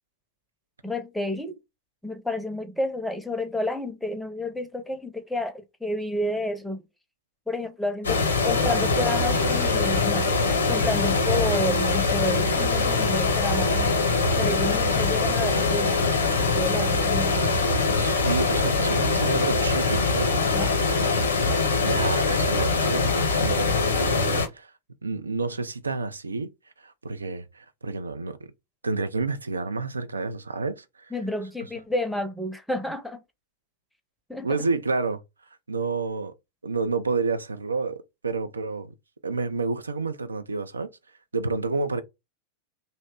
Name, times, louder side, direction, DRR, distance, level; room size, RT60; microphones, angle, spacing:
voice 1, 0.8-1.6 2.0-6.8 7.5-10.3 10.7-13.9 14.4-17.6 20.5-20.8 31.1-33.2 34.3-34.5, left 1 dB, ahead, 0.6 m, -30 dB
sound 1, 8.0-24.5, left 3 dB, 70° left, 0.7 m, -23 dB
voice 2, 17.9-20.3 21.8-24.7 25.0-26.5 26.8-28.5 28.8-31.1 34.4-35.2 35.7-36.3 36.6-38.9 39.2-40.9 41.3-42.0, right 3 dB, 75° right, 0.3 m, -29 dB
2.7 x 2.1 x 3.6 m
figure-of-eight pair, 90°, 0 cm